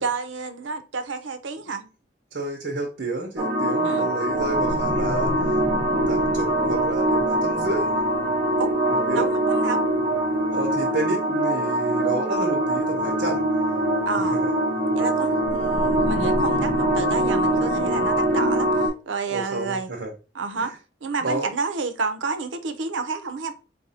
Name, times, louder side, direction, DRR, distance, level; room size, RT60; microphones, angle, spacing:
voice 1, 0.0-1.8 3.8-4.1 8.6-8.7 9.1-9.8 14.1-14.4 15.0-19.9 20.3-20.7 21.0-23.5, right 4 dB, 85° right, 0.6 m, -29 dB
voice 2, 2.3-5.6 6.1-7.9 8.9-9.3 10.5-13.4 14.4-14.5 19.3-20.1 20.6-20.8 21.2-21.5, right 2 dB, 60° right, 0.9 m, -30 dB
sound 1, 3.4-18.9, right 1 dB, 35° right, 1.0 m, -23 dB
4.1 x 2.6 x 4.1 m
head